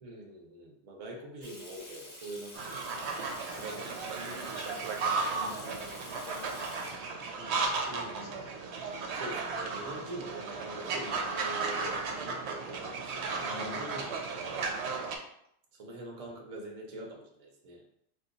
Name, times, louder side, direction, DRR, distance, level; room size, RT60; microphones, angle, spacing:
voice 1, 0.0-3.3 7.9-8.4 9.1-14.6 15.7-17.8, right 1 dB, 40° right, 0 dB, 0.6 m, -44 dB
Water tap faucet / Sink (filling or washing), 1.4-7.3, left 1 dB, 25° left, 0.5 m, -49 dB
sound 1, 2.5-15.2, right 4 dB, 75° right, 0.8 m, -35 dB
voice 2, 3.4-8.5 13.4-13.9, left 3 dB, 60° left, -1 dB, 0.7 m, -50 dB
2.8 x 2.5 x 3.9 m, 0.73 s
omnidirectional pair, 1.2 m